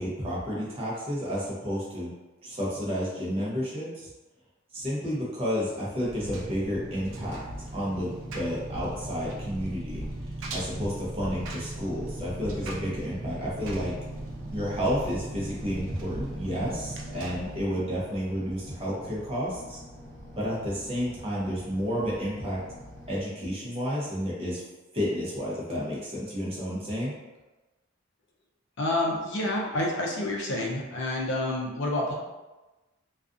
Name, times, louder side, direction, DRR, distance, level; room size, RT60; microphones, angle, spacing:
voice 1, 0.0-2.1 2.4-4.1 4.7-7.4 7.7-10.1 10.5-13.9 14.5-19.8 20.4-22.6 23.1-24.6 24.9-27.1, equal, 30° right, -6 dB, 0.7 m, -31 dB
Engine, 6.0-17.6, right 1 dB, 70° right, 0.4 m, -37 dB
sound 1, 11.9-23.2, left 1 dB, ahead, 0.9 m, -47 dB
voice 2, 28.8-32.1, left 1 dB, 60° left, -1 dB, 0.5 m, -28 dB
2.4 x 2.3 x 2.5 m, 1.1 s
head